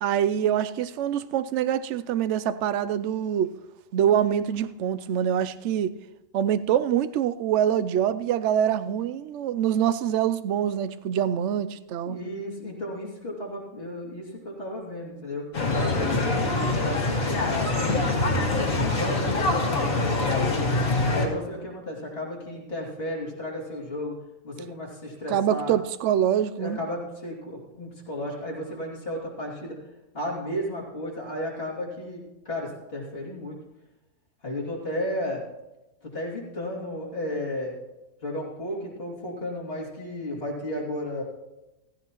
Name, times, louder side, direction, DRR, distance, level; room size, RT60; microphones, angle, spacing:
voice 1, 0.0-3.5 3.9-5.9 6.3-12.2 25.3-26.8, right 10 dB, 65° right, 13 dB, 0.8 m, -25 dB
voice 2, 12.0-15.4 15.7-17.7 18.6-20.9 21.1-24.1 24.4-25.7 26.6-29.8 30.1-33.6 34.4-35.4 36.0-37.8 38.2-41.2, left 1 dB, 45° left, -4 dB, 3.0 m, -33 dB
sound 1, 15.5-21.3, left 2 dB, 80° left, 2.4 m, -24 dB
15.5 x 14.5 x 3.0 m, 1.0 s
omnidirectional pair, 1.4 m